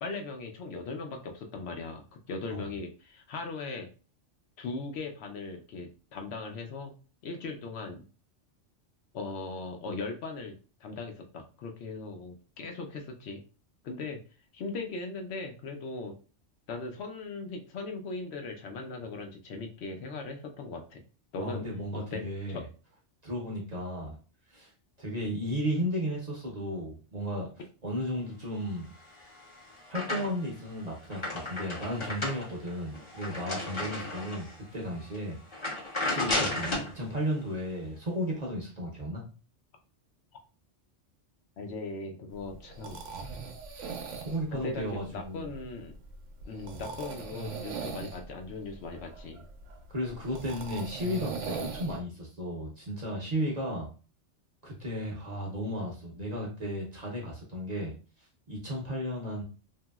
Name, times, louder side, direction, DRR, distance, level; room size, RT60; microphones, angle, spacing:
voice 1, 0.0-3.9 4.6-6.9 7.2-8.0 9.1-13.4 13.8-14.2 14.5-16.1 16.7-21.0 21.3-21.6 21.9-22.7 41.6-43.0 44.5-45.9 46.5-49.4, left 3 dB, 70° left, 3 dB, 0.8 m, -39 dB
voice 2, 21.4-22.6 23.2-24.2 24.5-24.7 25.0-27.5 27.8-28.9 29.9-35.4 36.0-39.2 44.2-45.5 49.9-53.9 54.6-57.9 58.5-59.4, equal, 40° right, -2 dB, 0.7 m, -34 dB
sound 1, 29.0-30.6 30.9-34.6 35.0-35.2 35.5-36.9, left 2 dB, 30° left, 0.6 m, -34 dB
sound 2, 42.3-52.0, right 5 dB, 80° right, 1.0 m, -41 dB
2.9 x 2.7 x 2.2 m, 0.36 s
omnidirectional pair, 1.2 m